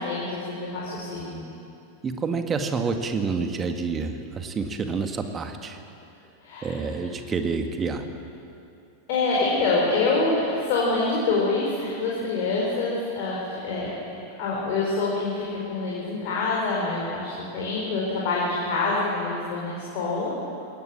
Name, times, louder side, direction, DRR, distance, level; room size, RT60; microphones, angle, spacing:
voice 1, 0.0-1.5 6.4-6.7 9.1-13.9 14.4-20.3, left 3 dB, 45° left, -4 dB, 4.7 m, -26 dB
voice 2, 2.0-5.8 6.6-8.1, right 4 dB, 20° right, 6 dB, 1.9 m, -28 dB
21.5 x 18.5 x 7.7 m, 2.6 s
figure-of-eight pair, 90°, 0 cm